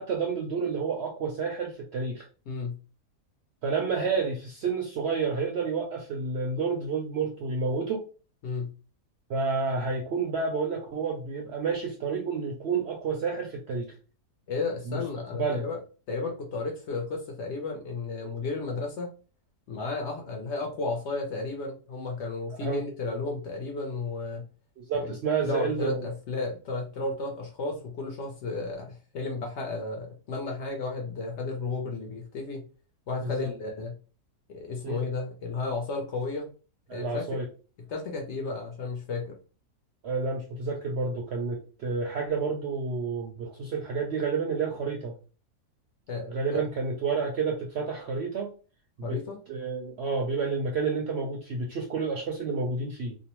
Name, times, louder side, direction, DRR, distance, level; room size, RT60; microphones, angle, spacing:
voice 1, 0.0-2.3 3.6-8.1 9.3-13.9 14.9-15.0 15.3-15.7 22.5-22.8 24.8-26.1 33.2-33.5 34.8-35.0 36.9-37.5 40.0-45.1 46.3-48.5 49.0-49.2 49.5-53.2, right 4 dB, 65° right, 1 dB, 0.6 m, -30 dB
voice 2, 14.5-15.8 16.1-19.1 19.7-24.4 24.9-25.1 25.4-32.6 33.1-33.9 34.5-36.5 36.9-37.4 37.9-39.4 46.1-46.6 49.0-49.4, left 3 dB, 65° left, 1 dB, 0.8 m, -33 dB
2.6 x 2.0 x 2.9 m, 0.36 s
omnidirectional pair, 1.5 m